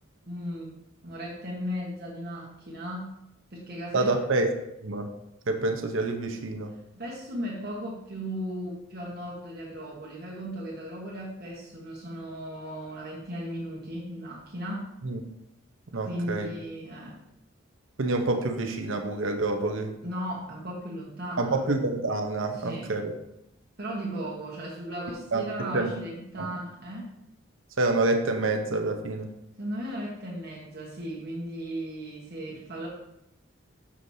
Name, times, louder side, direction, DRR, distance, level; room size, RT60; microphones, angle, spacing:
voice 1, 0.2-0.7 1.0-3.1 3.5-4.1 7.0-14.9 16.0-17.2 20.0-21.6 22.5-22.9 23.8-27.1 29.6-32.9, equal, 50° right, -4 dB, 1.3 m, -36 dB
voice 2, 3.9-4.5 4.8-5.1 5.5-6.7 15.0-15.2 15.9-16.5 18.0-19.9 21.4-23.1 25.3-25.9 26.4-26.5 27.8-29.3, right 2 dB, 75° right, 5 dB, 0.9 m, -27 dB
7.1 x 6.3 x 2.8 m, 0.82 s
head